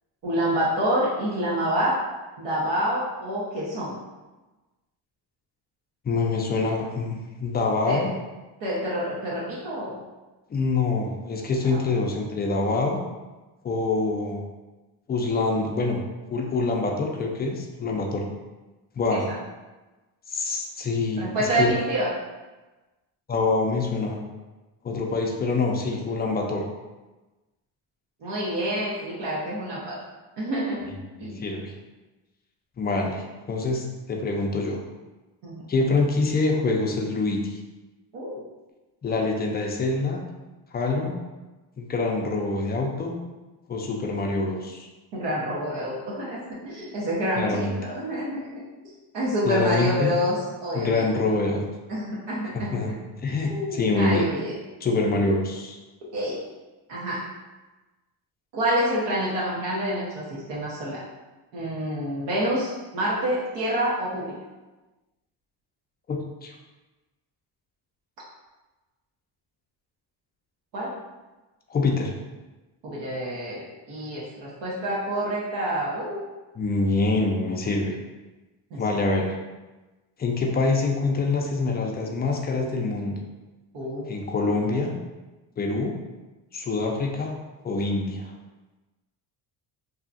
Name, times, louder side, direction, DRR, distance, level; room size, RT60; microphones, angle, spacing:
voice 1, 0.2-2.0 2.4-4.0 7.8-8.0 8.6-10.0 11.6-11.8 19.1-19.4 21.2-22.1 28.2-29.9 30.4-30.9 31.2-31.4 35.4-35.6 38.1-38.4 45.1-48.4 49.1-51.1 51.9-52.7 53.4-54.5 56.1-56.4 56.9-57.2 58.5-61.0 61.5-64.3 70.7-70.9 72.8-76.3 78.7-78.8 83.7-84.1, equal, 75° right, -7 dB, 0.9 m, -27 dB
voice 2, 6.0-8.1 10.5-13.0 13.6-14.4 15.1-16.0 16.3-18.2 19.0-19.2 20.3-21.7 23.3-24.2 24.8-26.6 30.9-31.7 32.8-34.8 35.7-37.4 39.0-40.2 40.7-41.1 41.8-43.2 43.7-44.9 47.4-47.7 49.5-50.1 50.7-51.6 52.7-52.9 53.2-54.3 54.8-55.8 66.1-66.5 71.7-72.1 76.5-77.9 78.8-79.3 80.2-83.2 84.1-84.9 85.6-85.9 86.5-87.3 87.6-88.3, left 3 dB, 25° left, 1 dB, 0.4 m, -25 dB
2.7 x 2.4 x 2.5 m, 1.2 s
cardioid pair, 90°, 43 cm